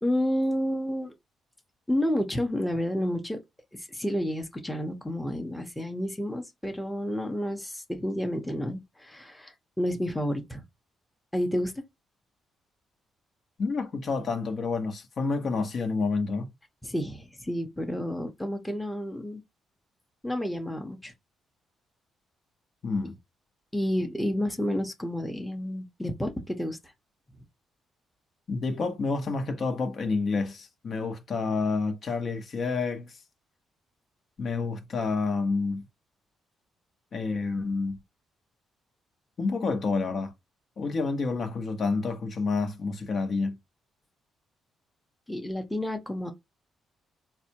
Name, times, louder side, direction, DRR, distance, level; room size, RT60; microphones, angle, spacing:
voice 1, 0.0-1.1 1.9-3.4 3.8-10.6 11.3-11.7 16.8-19.4 20.2-21.1 23.7-26.8 27.4-27.5 45.3-46.3, equal, 5° left, 0.8 m, -30 dB
voice 2, 13.6-16.5 22.8-23.1 28.5-33.1 34.4-35.8 37.1-38.0 39.4-40.3 40.8-43.5, left 4 dB, 50° left, 0.8 m, -29 dB
4.0 x 2.2 x 2.8 m
cardioid pair, 90°, 0 cm